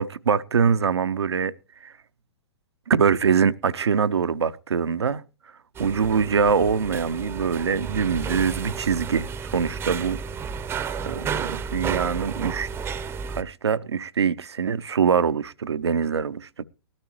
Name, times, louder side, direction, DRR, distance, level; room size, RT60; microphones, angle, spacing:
voice 1, 0.0-1.5 1.8-1.9 2.9-5.2 5.8-10.2 11.0-12.7 13.3-16.6, right 6 dB, 80° right, 0.7 m, -23 dB
sound 1, 5.7-13.4, right 6 dB, 15° right, 0.7 m, -32 dB
19.5 x 13.0 x 3.0 m
figure-of-eight pair, 115°, 14 cm